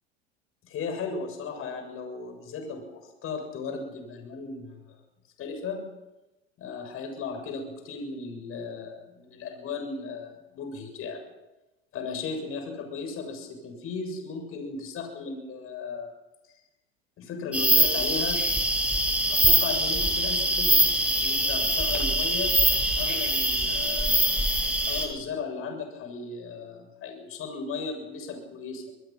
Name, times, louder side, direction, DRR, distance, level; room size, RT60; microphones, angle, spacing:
voice 1, 0.6-5.0 5.4-5.8 6.6-11.2 11.9-16.1 17.2-18.4 19.3-20.8 21.1-22.5 23.0-24.4 24.9-28.9, left 4 dB, 40° left, 4 dB, 7.2 m, -36 dB
sound 1, 17.5-25.1, right 1 dB, 5° right, 5.9 m, -23 dB
26.0 x 20.5 x 5.9 m, 1.0 s
hypercardioid pair, 90°, 32 cm